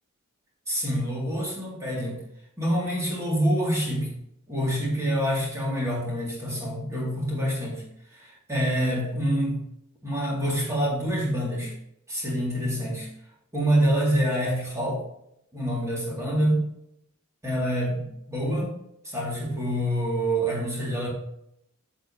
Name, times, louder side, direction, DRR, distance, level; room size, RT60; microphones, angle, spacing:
voice 1, 0.7-2.2 2.6-4.2 4.5-7.8 8.1-9.6 10.0-11.7 12.1-13.1 13.5-15.0 15.5-16.7 17.4-18.7 19.0-21.1, equal, 15° right, -4 dB, 2.3 m, -26 dB
9.9 x 6.4 x 2.8 m, 0.77 s
head